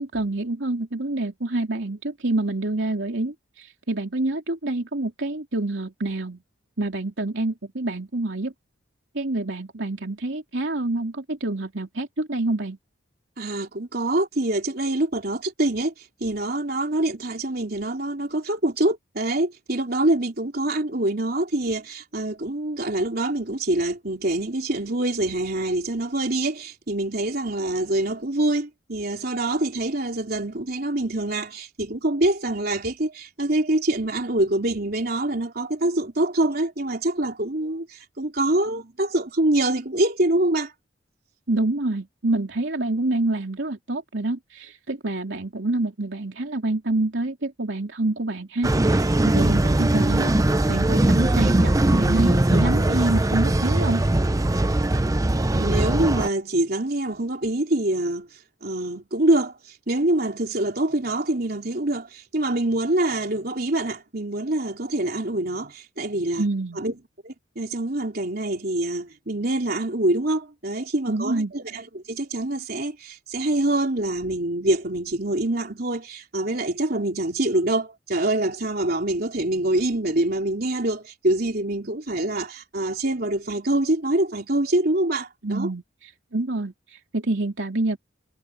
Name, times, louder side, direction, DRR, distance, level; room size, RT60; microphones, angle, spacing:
voice 1, 0.0-6.4 6.8-8.5 9.1-12.8 41.5-50.3 50.7-54.0 66.4-66.8 71.1-71.5 85.4-88.0, right 2 dB, 70° right, 3.0 m, -27 dB
voice 2, 13.4-15.9 16.2-40.7 55.5-58.3 58.6-59.6 59.9-66.5 66.8-67.0 67.2-85.7, right 1 dB, 50° right, 3.7 m, -25 dB
sound 1, 48.6-56.3, right 1 dB, 20° right, 0.6 m, -20 dB
head